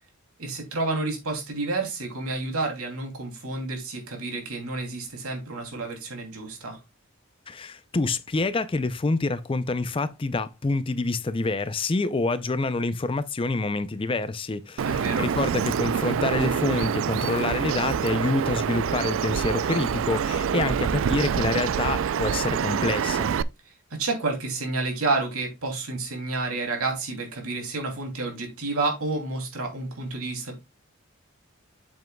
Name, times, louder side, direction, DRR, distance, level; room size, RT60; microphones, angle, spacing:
voice 1, 0.4-6.8 14.8-15.3 24.0-30.7, right 3 dB, 90° right, 2.7 m, -30 dB
voice 2, 7.5-23.3, left 3 dB, 25° left, 0.4 m, -27 dB
Bird vocalization bird call bird song, 14.8-23.4, right 7 dB, 65° right, 0.3 m, -26 dB
7.7 x 7.3 x 2.2 m
head